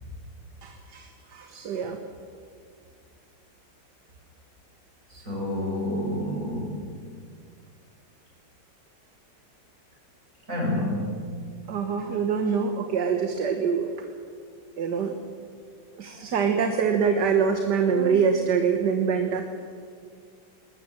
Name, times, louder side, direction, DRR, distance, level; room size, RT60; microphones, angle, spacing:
voice 1, 0.6-1.1 1.3-2.0 11.7-13.9 14.8-15.1 16.0-19.4, right 6 dB, 65° right, 5 dB, 1.9 m, -24 dB
voice 2, 5.1-6.8 10.5-11.1, left 1 dB, 45° right, -2 dB, 7.1 m, -28 dB
20.0 x 20.0 x 7.8 m, 2.1 s
omnidirectional pair, 2.0 m